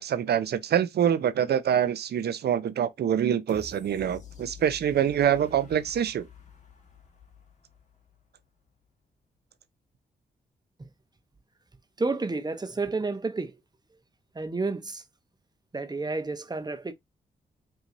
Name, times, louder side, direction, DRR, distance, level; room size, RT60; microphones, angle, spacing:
voice 1, 0.0-6.2, right 9 dB, 70° right, 0.6 m, -25 dB
sound 1, 3.5-8.4 8.8-8.9, left 6 dB, 45° left, 1.6 m, -48 dB
voice 2, 12.0-13.5 14.3-15.0 15.7-16.9, right 3 dB, 25° right, 0.8 m, -30 dB
5.4 x 2.8 x 2.5 m
supercardioid pair, 55°, 18 cm